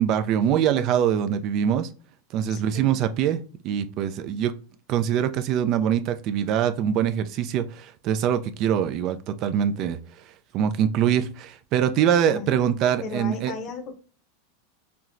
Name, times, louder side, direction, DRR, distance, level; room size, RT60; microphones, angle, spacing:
voice 1, 0.0-1.9 2.3-4.5 4.9-10.0 10.5-13.5, right 9 dB, 45° right, 0.3 m, -23 dB
voice 2, 2.5-3.0 12.3-12.5 13.0-14.0, left 3 dB, 40° left, 0.6 m, -35 dB
4.3 x 2.0 x 2.4 m
supercardioid pair, 130°, 0 cm